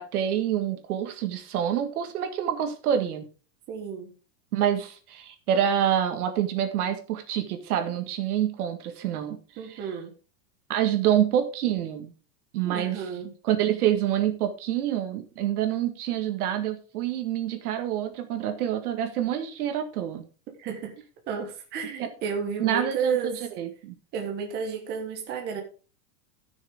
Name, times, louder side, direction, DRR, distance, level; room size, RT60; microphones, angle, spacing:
voice 1, 0.0-3.3 4.5-9.4 10.7-12.1 12.5-13.0 13.4-20.3 22.0-22.1 22.6-24.0, right 10 dB, 65° right, 8 dB, 1.7 m, -27 dB
voice 2, 3.7-4.1 9.6-10.1 12.6-13.3 20.6-20.9 21.3-23.5 24.1-25.6, right 6 dB, 20° right, 2 dB, 1.3 m, -32 dB
14.0 x 6.4 x 3.5 m, 0.36 s
supercardioid pair, 175°, 47 cm